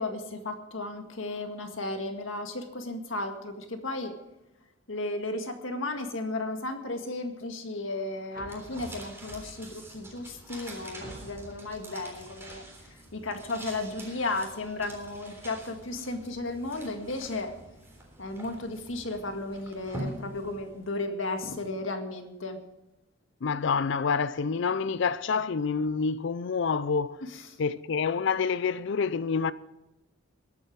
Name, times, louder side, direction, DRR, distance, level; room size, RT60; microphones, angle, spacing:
voice 1, 0.0-4.2 4.9-12.7 13.1-17.5 18.2-22.6 27.2-27.6, left 2 dB, 90° left, 1.9 m, -34 dB
sound 1, 8.3-9.8 10.5-10.6 11.0-11.8, right 1 dB, 45° right, 1.8 m, -46 dB
sound 2, 8.5-21.0, right 1 dB, 15° right, 3.6 m, -45 dB
voice 2, 23.4-27.2 27.6-29.5, left 5 dB, 65° left, 0.5 m, -27 dB
21.5 x 8.8 x 4.7 m
head